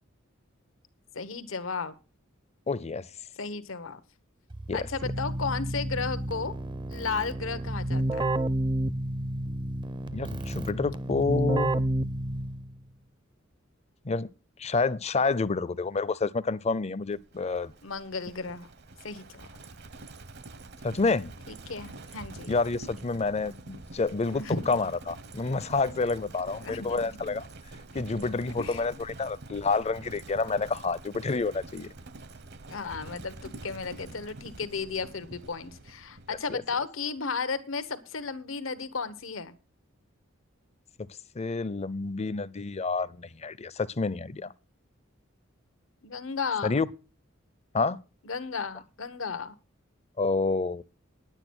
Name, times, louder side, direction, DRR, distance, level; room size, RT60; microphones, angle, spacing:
voice 1, 1.1-1.9 3.4-4.0 4.7-6.5 6.9-8.3 17.8-18.7 19.0-19.5 21.5-22.5 24.3-24.6 26.6-27.2 28.6-28.9 32.7-39.5 46.0-46.8 48.2-49.5, left 5 dB, 85° left, 1.1 m, -34 dB
voice 2, 2.7-3.1 4.7-4.8 10.1-11.7 14.0-14.3 14.6-17.7 20.8-21.3 22.5-27.5 27.9-31.9 36.5-36.6 41.4-44.5 46.6-46.9 47.7-48.0 50.2-50.8, left 4 dB, 35° left, 0.6 m, -28 dB
Keyboard (musical), 4.5-12.8, right 1 dB, 25° right, 0.6 m, -30 dB
Livestock farm animals working animals, 17.1-36.8, right 2 dB, 55° right, 1.0 m, -46 dB
10.5 x 9.0 x 6.2 m
head